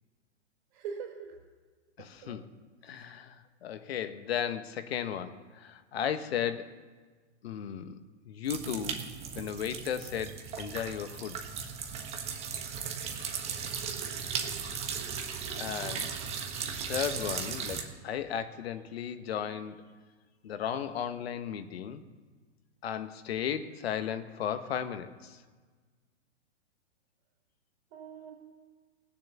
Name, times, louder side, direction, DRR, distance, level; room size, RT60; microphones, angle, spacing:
voice 1, 0.7-1.4 2.0-2.4 27.9-28.3, right 6 dB, 40° right, 2 dB, 4.5 m, -43 dB
voice 2, 2.0-2.5 2.8-6.7 7.4-8.0 8.2-9.0 9.3-11.4 15.6-16.1 16.9-19.8 20.4-22.0 22.8-25.4, left 9 dB, 60° left, 10 dB, 1.3 m, -35 dB
sound 1, 8.5-17.8, right 6 dB, 15° right, 1.3 m, -37 dB
18.5 x 7.4 x 7.2 m, 1.4 s
hypercardioid pair, 150°, 35 cm